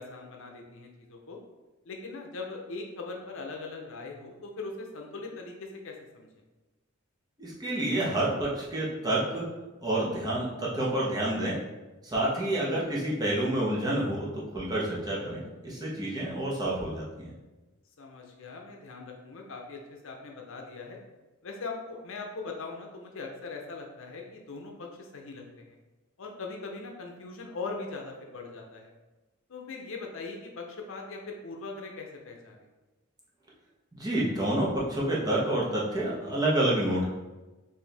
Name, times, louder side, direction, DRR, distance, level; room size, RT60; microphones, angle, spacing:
voice 1, 0.0-1.4 1.8-6.3 12.3-12.6 18.0-21.0 21.4-25.8 26.2-28.9 29.5-32.7, left 3 dB, 70° left, 1 dB, 0.6 m, -41 dB
voice 2, 7.4-9.4 9.8-11.6 12.0-17.2 33.9-37.1, right 1 dB, 20° right, -6 dB, 1.0 m, -28 dB
4.4 x 2.7 x 3.4 m, 1.1 s
head